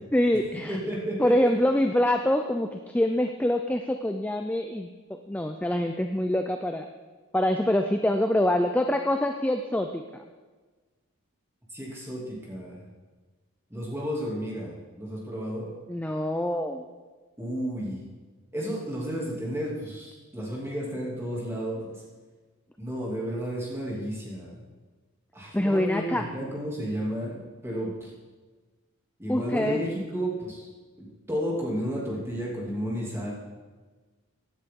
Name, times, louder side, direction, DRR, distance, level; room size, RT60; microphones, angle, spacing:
voice 1, 0.1-0.8 1.2-4.9 5.3-6.9 7.3-10.0 15.9-16.8 25.5-26.2 29.3-29.8, left 1 dB, 5° left, 5 dB, 0.4 m, -25 dB
voice 2, 0.7-1.5 11.7-12.8 13.7-15.7 17.4-18.1 18.5-21.9 22.8-24.6 25.3-28.1 29.2-30.6 31.0-33.3, equal, 10° right, -4 dB, 2.5 m, -32 dB
16.0 x 9.8 x 3.7 m, 1.4 s
head